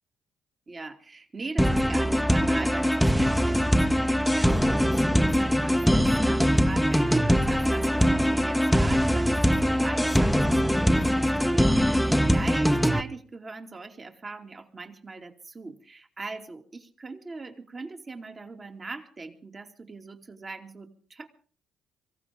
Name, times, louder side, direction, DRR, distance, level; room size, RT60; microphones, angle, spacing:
voice 1, 0.7-21.3, right 3 dB, 35° right, 4 dB, 2.8 m, -40 dB
sound 1, 1.6-13.0, equal, ahead, 1.2 m, -22 dB
24.5 x 15.5 x 3.8 m, 0.41 s
hypercardioid pair, 55°, 0 cm